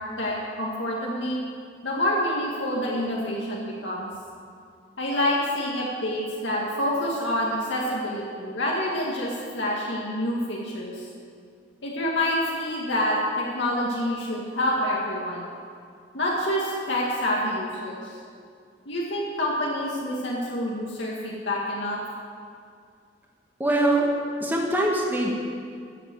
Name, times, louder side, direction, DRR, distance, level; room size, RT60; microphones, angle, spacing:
voice 1, 0.2-1.4 1.8-4.1 5.0-11.1 11.8-15.5 16.1-18.2 18.9-22.0, left 1 dB, 75° left, -4 dB, 1.9 m, -27 dB
voice 2, 23.6-24.1 24.4-25.3, right 1 dB, 10° right, -2 dB, 1.8 m, -23 dB
14.0 x 8.0 x 7.8 m, 2.3 s
head